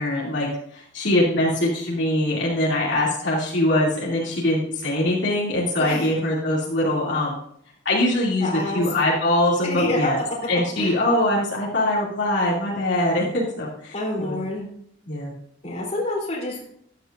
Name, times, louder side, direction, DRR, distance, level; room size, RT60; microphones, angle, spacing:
voice 1, 0.0-7.4 7.8-10.2 10.5-14.4 15.1-15.3, left 1 dB, 65° left, -6 dB, 2.8 m, -23 dB
voice 2, 5.8-6.1 8.4-8.9 9.6-10.1 10.8-11.0 13.9-14.7 15.6-16.6, left 2 dB, 35° left, -3 dB, 3.5 m, -27 dB
14.5 x 10.5 x 2.6 m, 0.67 s
head